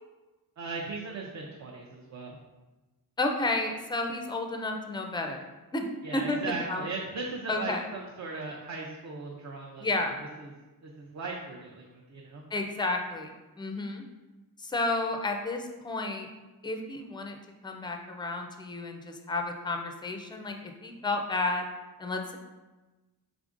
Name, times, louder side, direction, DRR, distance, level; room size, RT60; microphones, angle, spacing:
voice 1, 0.6-2.4 6.0-9.9 10.4-10.5 10.8-12.4, right 3 dB, 50° right, -2 dB, 0.6 m, -38 dB
voice 2, 3.2-5.5 5.7-5.9 6.1-6.8 7.5-7.8 9.8-10.2 12.5-14.1 14.6-16.3 16.6-17.4 17.6-21.7 22.0-22.4, left 2 dB, 15° left, 4 dB, 0.4 m, -31 dB
5.0 x 3.4 x 2.5 m, 1.1 s
wide cardioid pair, 130°, 37 cm